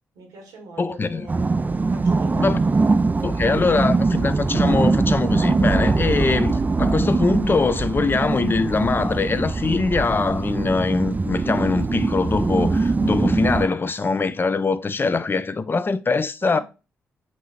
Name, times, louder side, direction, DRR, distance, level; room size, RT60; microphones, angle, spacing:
voice 1, 0.1-1.5 1.9-2.8 16.4-16.6, right 3 dB, 80° right, 1.6 m, -40 dB
voice 2, 0.8-1.3 2.4-2.6 3.2-16.6, left 4 dB, 35° left, 0.5 m, -22 dB
sound 1, 1.3-13.7, right 3 dB, 25° right, 0.3 m, -22 dB
6.0 x 2.8 x 2.7 m
hypercardioid pair, 40°, 6 cm